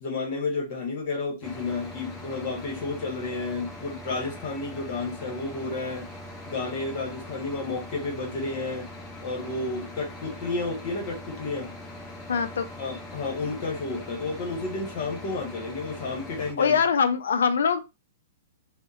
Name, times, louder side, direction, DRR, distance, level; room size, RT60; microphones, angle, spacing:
voice 1, 0.0-6.1 6.5-8.9 9.2-11.7 12.8-16.8, left 3 dB, 50° left, 1.0 m, -31 dB
sound 1, 1.4-16.5, left 1 dB, 10° left, 0.5 m, -42 dB
voice 2, 12.3-12.7 16.6-17.8, left 6 dB, 85° left, 0.4 m, -23 dB
2.7 x 2.1 x 2.4 m
hypercardioid pair, 150°, 0 cm